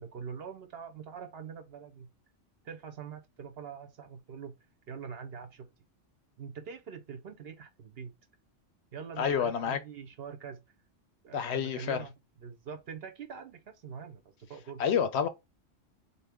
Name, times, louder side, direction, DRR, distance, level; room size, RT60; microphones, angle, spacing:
voice 1, 0.0-2.1 2.6-4.6 4.9-5.7 6.4-8.1 8.9-10.6 11.2-12.1 12.4-15.0, right 6 dB, 60° right, 0.9 m, -44 dB
voice 2, 9.2-9.8 11.3-12.0 14.8-15.3, left 7 dB, 65° left, 0.8 m, -28 dB
3.9 x 2.8 x 3.5 m
omnidirectional pair, 1.3 m